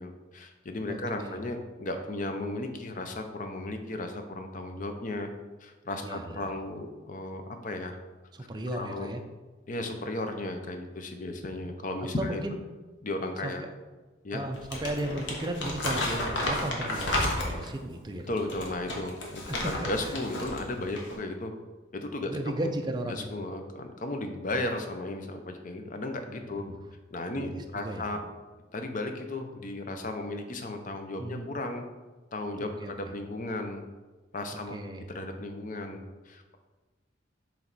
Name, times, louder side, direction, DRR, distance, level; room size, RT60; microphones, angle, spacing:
voice 1, 0.0-5.3 5.6-8.0 8.7-9.1 9.7-12.4 13.0-13.6 14.2-14.4 18.3-21.5 21.9-22.3 22.6-22.7 23.0-26.6 27.1-28.2 28.7-31.8 32.3-33.8 34.3-34.7 35.1-36.6, left 2 dB, 45° left, 6 dB, 0.6 m, -35 dB
voice 2, 0.9-1.4 6.0-6.5 8.3-9.2 12.2-12.6 13.4-13.5 14.3-18.4 22.3-23.3 26.5-26.8 27.3-28.1 31.2-31.5 32.6-32.9 34.7-35.0, right 1 dB, 20° right, 4 dB, 0.5 m, -35 dB
Crumpling crinkling, 14.5-17.8 18.4-20.6 20.9-21.1, left 1 dB, 70° left, 1.1 m, -32 dB
7.2 x 3.2 x 4.0 m, 1.2 s
head